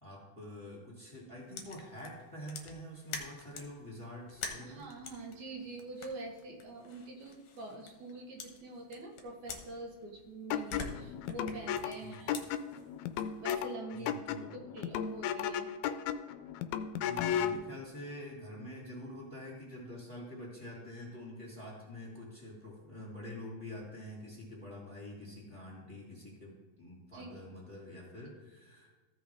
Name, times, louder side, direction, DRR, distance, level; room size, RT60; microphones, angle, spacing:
voice 1, 0.0-4.9 12.0-12.3 14.0-14.5 17.0-28.9, left 1 dB, 10° left, -4 dB, 2.3 m, -46 dB
sound 1, 1.5-3.8 4.3-8.1 8.4-10.2 10.5-13.6, left 5 dB, 65° left, 1.8 m, -46 dB
voice 2, 4.7-12.3 13.4-14.1 14.5-15.7 27.1-27.4, right 2 dB, 75° right, 0 dB, 2.6 m, -45 dB
sound 2, 10.5-17.6, left 8 dB, 80° left, 1.8 m, -35 dB
15.0 x 5.4 x 3.5 m, 1.3 s
omnidirectional pair, 3.5 m